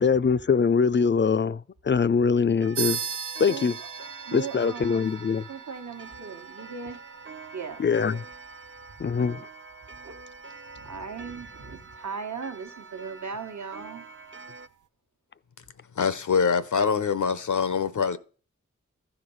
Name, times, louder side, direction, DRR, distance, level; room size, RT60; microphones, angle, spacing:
voice 1, 0.0-3.0 3.4-3.7 4.3-5.4 7.8-8.2 9.0-9.5, left 5 dB, 40° left, 0.4 m, -23 dB
Clock, 2.6-14.7, right 4 dB, 40° right, 0.6 m, -46 dB
sound 1, 2.7-12.7, right 7 dB, 85° right, 0.5 m, -40 dB
voice 2, 3.5-3.9 4.2-5.2 5.5-7.0 7.5-8.2 10.0-10.1 10.7-14.1, right 5 dB, 70° right, 1.1 m, -38 dB
voice 3, 16.0-18.2, left 6 dB, 80° left, 0.7 m, -24 dB
14.0 x 5.0 x 5.5 m
wide cardioid pair, 70°, 30 cm